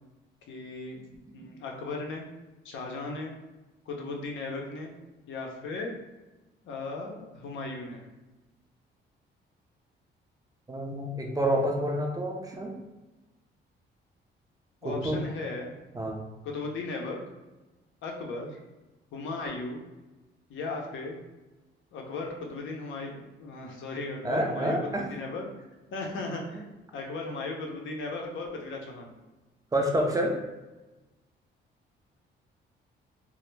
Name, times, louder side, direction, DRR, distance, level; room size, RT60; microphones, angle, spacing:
voice 1, 0.5-1.1 1.3-2.3 2.6-3.4 3.9-4.9 5.3-5.9 6.6-8.1 14.8-15.7 16.4-17.2 18.0-18.6 19.1-19.8 20.5-21.2 21.9-25.4 25.9-26.7 26.9-29.1, left 3 dB, 75° left, 1 dB, 0.6 m, -36 dB
voice 2, 10.7-12.7 14.8-15.2 15.9-16.2 24.2-25.1 29.7-30.4, right 1 dB, 20° right, 1 dB, 0.4 m, -28 dB
2.1 x 2.0 x 3.1 m, 1.1 s
cardioid pair, 90°, 20 cm